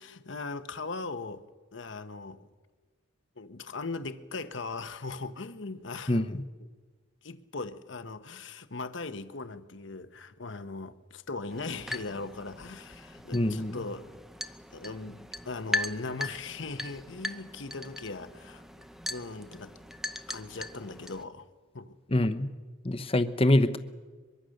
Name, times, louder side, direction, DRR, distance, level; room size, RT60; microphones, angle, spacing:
voice 1, 0.0-1.4 1.7-2.5 3.4-6.4 7.2-14.1 14.7-18.6 19.1-19.7 20.3-21.5 21.7-22.0, left 3 dB, 65° left, 10 dB, 1.1 m, -39 dB
voice 2, 6.1-6.4 13.3-13.8 22.1-22.5 22.8-23.8, left 1 dB, 30° left, 10 dB, 1.0 m, -25 dB
sound 1, 11.5-21.2, left 1 dB, ahead, 0.7 m, -39 dB
23.0 x 23.0 x 6.6 m, 1.4 s
head